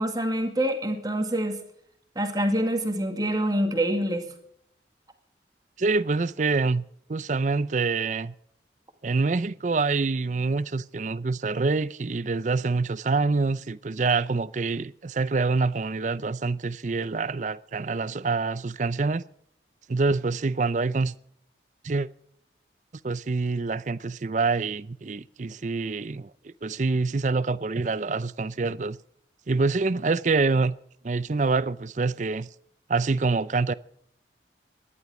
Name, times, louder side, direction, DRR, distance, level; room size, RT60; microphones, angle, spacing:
voice 1, 0.0-1.6 2.2-4.2, right 1 dB, 20° right, 2.1 m, -26 dB
voice 2, 5.8-6.8 7.1-8.3 9.0-19.2 19.9-21.1 21.8-22.1 23.0-29.0 29.5-30.8 31.0-32.5 32.9-33.7, right 3 dB, 45° right, 0.5 m, -26 dB
18.0 x 11.0 x 5.0 m
head